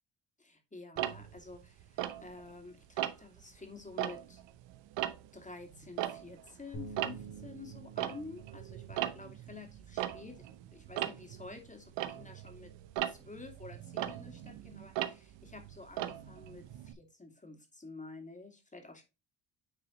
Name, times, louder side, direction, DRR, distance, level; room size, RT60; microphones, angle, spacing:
voice 1, 0.4-4.4 5.3-12.7 13.1-19.0, left 3 dB, 15° left, 4 dB, 2.4 m, -50 dB
Tick-tock, 1.0-2.6 3.0-3.4 3.8-6.6 6.8-16.9, right 13 dB, 75° right, 0.9 m, -39 dB
Bass guitar, 6.7-13.0, right 4 dB, 65° left, 4.0 m, -52 dB
9.6 x 4.0 x 3.0 m, 0.27 s
supercardioid pair, 80°, 44 cm